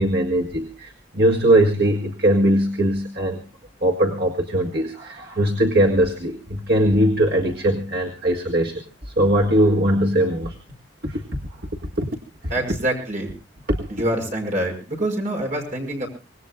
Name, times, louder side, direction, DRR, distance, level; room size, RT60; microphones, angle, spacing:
voice 1, 0.0-3.4 3.8-10.5 11.0-11.2 12.0-12.1 13.7-13.8, right 1 dB, 60° right, 1 dB, 1.9 m, -20 dB
voice 2, 12.5-13.4 13.9-16.1, right 1 dB, 45° right, 1 dB, 6.1 m, -25 dB
25.5 x 20.0 x 2.3 m, 0.32 s
head